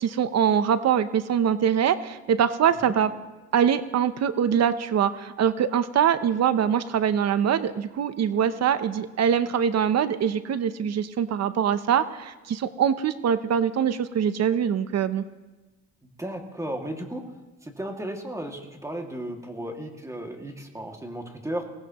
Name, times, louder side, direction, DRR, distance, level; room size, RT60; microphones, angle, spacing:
voice 1, 0.0-3.1 3.5-15.2, right 8 dB, 60° right, 12 dB, 0.8 m, -23 dB
voice 2, 16.2-17.2 17.6-21.6, right 1 dB, 10° right, 2 dB, 2.2 m, -34 dB
22.0 x 17.5 x 3.0 m, 1.2 s
cardioid pair, 90°, 30 cm